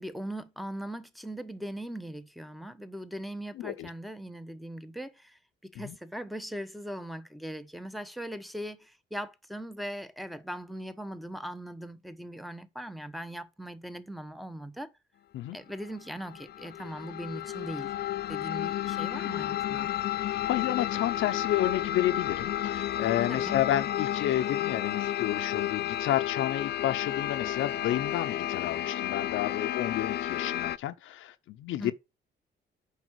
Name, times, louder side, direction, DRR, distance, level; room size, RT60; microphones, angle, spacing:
voice 1, 0.0-14.9 15.5-17.9 18.3-19.9 23.3-23.6 31.8-31.9, equal, ahead, 1.0 m, -40 dB
voice 2, 3.6-3.9 5.8-6.0 15.3-15.6 20.4-31.9, left 13 dB, 80° left, 0.7 m, -30 dB
sound 1, 16.0-30.8, left 12 dB, 55° left, 0.5 m, -32 dB
8.3 x 5.5 x 4.7 m
cardioid pair, 90°, 20 cm